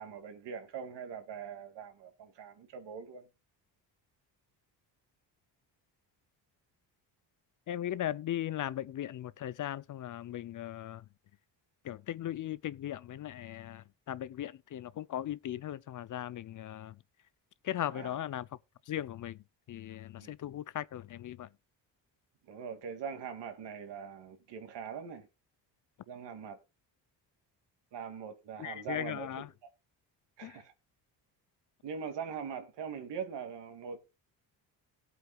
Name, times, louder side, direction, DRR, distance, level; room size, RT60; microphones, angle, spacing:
voice 1, 0.0-3.3 17.9-18.2 20.2-20.3 22.4-25.3 26.1-26.6 27.9-29.5 30.4-30.7 31.8-34.0, right 7 dB, 75° right, 2.3 m, -42 dB
voice 2, 7.7-11.0 11.8-16.9 17.6-18.5 18.9-19.4 19.7-21.5 28.6-29.5 30.4-30.6, left 12 dB, 45° left, 0.5 m, -38 dB
18.0 x 8.2 x 2.3 m
cardioid pair, 90°, 43 cm